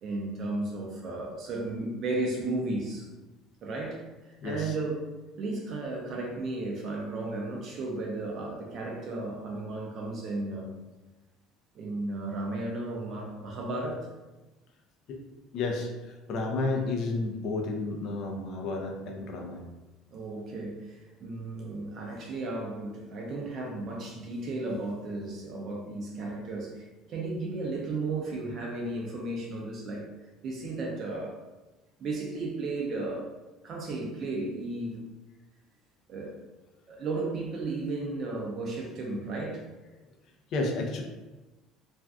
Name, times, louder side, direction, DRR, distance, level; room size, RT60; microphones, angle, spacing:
voice 1, 0.0-3.1 3.6-5.1 5.4-10.7 11.7-14.1 20.1-30.1 30.4-31.4 32.0-33.3 33.6-35.0 36.1-36.4 36.9-39.7, right 2 dB, 40° right, -1 dB, 0.5 m, -34 dB
voice 2, 4.4-4.7 15.1-15.2 15.5-19.6 40.5-41.0, left 3 dB, 50° left, 1 dB, 0.5 m, -31 dB
2.5 x 2.3 x 3.4 m, 1.1 s
cardioid pair, 155°, 0 cm